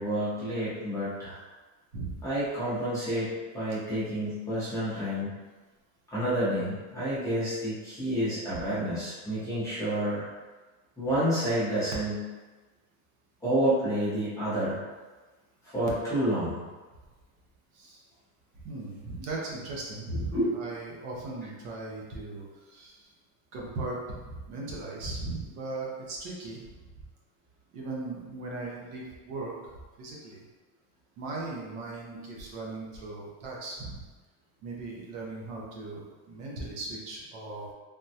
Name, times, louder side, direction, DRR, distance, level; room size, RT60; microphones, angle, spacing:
voice 1, 0.0-1.4 2.2-3.3 3.5-5.3 6.1-10.2 11.0-12.2 13.4-14.8 15.7-16.6 20.3-20.5, right 1 dB, 5° left, -12 dB, 0.6 m, -29 dB
voice 2, 18.6-22.4 22.7-23.0 23.5-26.6 27.7-29.5 30.0-30.4 31.2-34.0 34.6-37.7, right 2 dB, 50° right, -3 dB, 0.7 m, -38 dB
3.4 x 2.2 x 2.7 m, 1.3 s
supercardioid pair, 170°, 42 cm